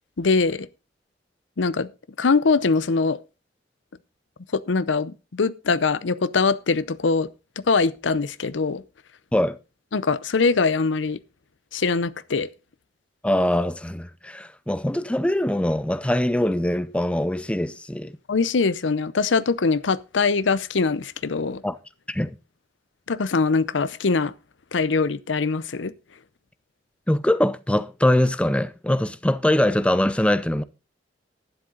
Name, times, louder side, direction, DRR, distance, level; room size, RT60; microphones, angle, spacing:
voice 1, 0.2-0.7 1.6-1.9 2.2-3.2 4.5-7.3 7.6-8.8 9.9-11.2 11.7-12.5 18.3-21.6 23.1-24.3 24.7-25.9, left 4 dB, 90° left, 0.7 m, -22 dB
voice 2, 13.2-18.1 21.6-21.8 22.1-22.4 27.1-30.6, left 1 dB, 5° left, 0.5 m, -22 dB
11.5 x 10.5 x 3.8 m
head